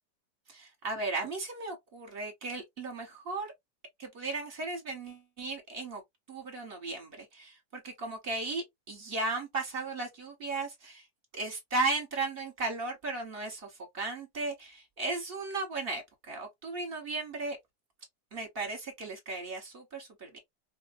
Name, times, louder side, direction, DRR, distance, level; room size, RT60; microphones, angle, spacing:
voice 1, 0.5-3.5 4.0-6.0 6.3-11.0 11.3-16.0 16.3-17.6 18.3-20.4, right 3 dB, 40° right, 1.1 m, -36 dB
4.4 x 2.1 x 2.5 m
omnidirectional pair, 1.8 m